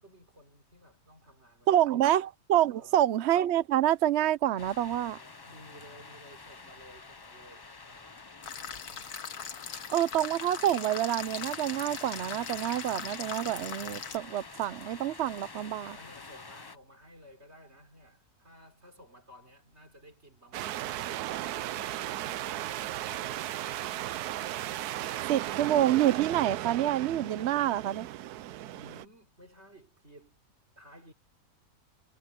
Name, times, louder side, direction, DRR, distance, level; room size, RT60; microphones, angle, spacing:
voice 1, 0.0-2.1 2.7-3.0 4.9-8.3 15.9-21.0 21.6-23.8 28.6-30.4 30.8-31.1, equal, 45° right, 4.0 m, -55 dB
voice 2, 1.7-5.2 9.9-16.0 25.3-28.1, right 12 dB, 65° right, 0.7 m, -27 dB
sound 1, 4.6-16.8, left 4 dB, 40° left, 0.3 m, -47 dB
sound 2, 8.4-14.2, left 7 dB, 80° left, 1.7 m, -40 dB
sound 3, 20.5-29.0, right 13 dB, 90° right, 1.2 m, -36 dB
omnidirectional pair, 1.6 m